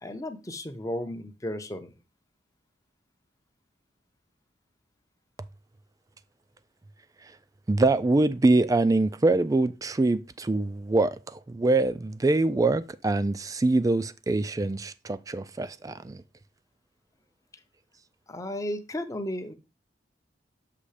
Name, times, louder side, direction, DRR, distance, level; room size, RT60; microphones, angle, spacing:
voice 1, 0.0-1.9 18.3-19.5, left 1 dB, 20° left, 0.7 m, -34 dB
voice 2, 7.7-16.2, right 2 dB, 20° right, 0.3 m, -24 dB
6.8 x 3.1 x 4.8 m
head